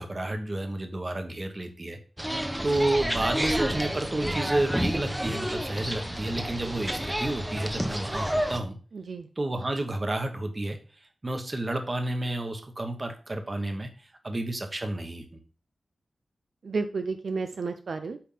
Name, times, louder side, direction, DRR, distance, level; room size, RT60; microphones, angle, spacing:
voice 1, 0.0-2.0 2.6-8.8 9.4-10.8 11.2-15.4, right 1 dB, 30° right, 5 dB, 1.3 m, -30 dB
sound 1, 2.2-8.6, equal, 10° right, 0.9 m, -30 dB
voice 2, 8.9-9.3 16.6-18.2, right 4 dB, 70° right, 7 dB, 0.6 m, -32 dB
8.7 x 3.7 x 5.5 m, 0.38 s
wide cardioid pair, 125°, 0 cm